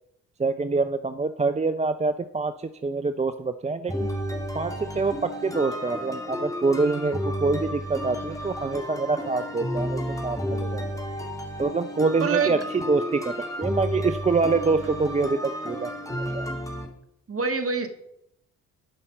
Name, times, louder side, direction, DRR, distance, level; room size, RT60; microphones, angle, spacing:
voice 1, 0.4-4.1 4.5-10.8 11.6-13.3 13.6-15.9 16.3-16.5, right 3 dB, 15° right, 10 dB, 0.5 m, -25 dB
sound 1, 3.9-16.9, equal, 10° left, 2.4 m, -32 dB
voice 2, 12.2-12.7 17.3-17.9, right 5 dB, 35° right, 7 dB, 1.6 m, -25 dB
11.5 x 5.7 x 5.3 m, 0.78 s
hypercardioid pair, 40°, 39 cm